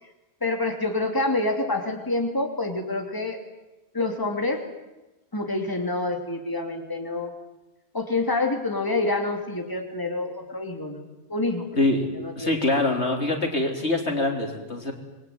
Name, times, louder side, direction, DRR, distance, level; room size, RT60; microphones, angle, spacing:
voice 1, 0.4-3.4 3.9-4.6 5.3-7.3 7.9-11.7 12.1-12.6, left 2 dB, 20° left, 3 dB, 3.0 m, -27 dB
voice 2, 11.8-12.1 12.4-14.9, left 2 dB, 80° left, 3 dB, 4.1 m, -24 dB
27.0 x 22.0 x 9.5 m, 1.0 s
omnidirectional pair, 1.1 m